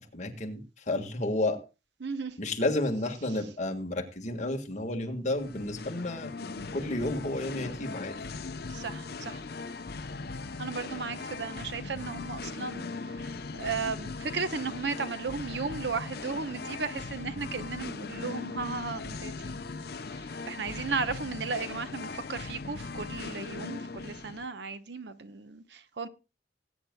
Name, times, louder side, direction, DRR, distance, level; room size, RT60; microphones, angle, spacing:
voice 1, 0.1-1.6 2.4-6.3 6.7-8.1, left 2 dB, 45° left, 1.7 m, -31 dB
voice 2, 2.0-2.4 8.7-9.4 10.6-12.9 13.2-13.3 13.6-19.6 20.1-26.1, right 4 dB, 80° right, 0.9 m, -35 dB
Singing, 5.3-24.4, left 3 dB, 60° left, 0.7 m, -39 dB
19.5 x 9.3 x 2.2 m
head